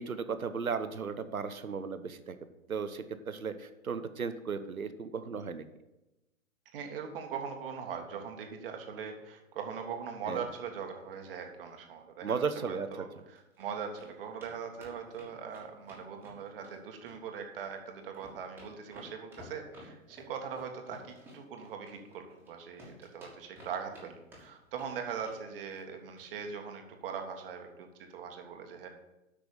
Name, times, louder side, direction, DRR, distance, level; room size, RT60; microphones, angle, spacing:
voice 1, 0.0-2.4 2.7-5.6 10.3-10.4 12.2-12.9, right 5 dB, 85° right, 10 dB, 1.1 m, -35 dB
voice 2, 6.7-28.9, right 6 dB, 40° right, 4 dB, 1.7 m, -41 dB
sound 1, 13.1-13.7 14.0-14.1 14.4-14.5 14.8-16.8 17.1-17.7 18.0-22.5 22.8-24.1 24.3-24.9 25.2-25.4 25.7-25.9 26.2-26.3 26.6-26.7, equal, 5° right, 2.5 m, -53 dB
8.4 x 6.1 x 7.0 m, 0.97 s
figure-of-eight pair, 130°, 41 cm